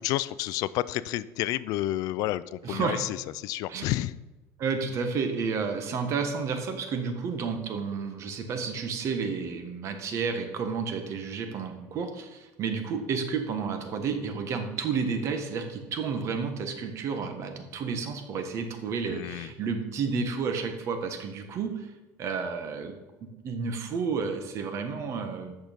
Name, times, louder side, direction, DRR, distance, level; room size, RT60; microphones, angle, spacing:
voice 1, 0.0-4.2 19.1-19.5, left 15 dB, 60° left, 17 dB, 0.4 m, -30 dB
voice 2, 2.6-3.0 3.7-3.8 4.6-21.9 22.2-22.9 23.2-25.5, right 5 dB, 45° right, 6 dB, 1.5 m, -31 dB
8.8 x 6.6 x 5.3 m, 1.1 s
cardioid pair, 125°, 7 cm